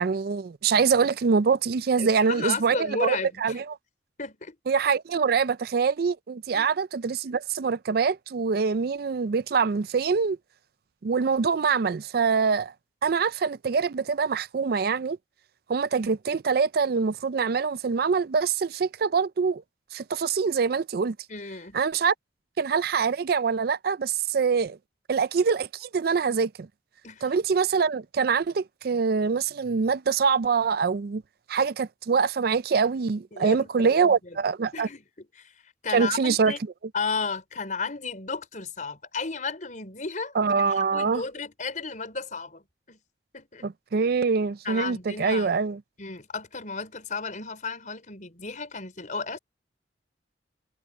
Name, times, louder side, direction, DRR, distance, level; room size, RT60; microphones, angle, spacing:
voice 1, 0.0-3.8 4.7-10.4 11.0-12.7 13.0-15.2 15.7-19.6 19.9-21.2 21.7-22.1 22.6-24.8 25.1-26.7 27.2-31.2 31.5-34.9 35.9-36.5 40.4-41.2 43.6-45.8, right 5 dB, 55° right, 0.4 m, -24 dB
voice 2, 2.0-3.6 4.2-4.6 6.5-6.7 21.3-21.8 27.0-27.2 33.3-34.5 34.7-36.6 36.9-43.0 43.3-43.7 44.6-45.5 46.0-49.4, left 4 dB, 45° left, 5.0 m, -34 dB
head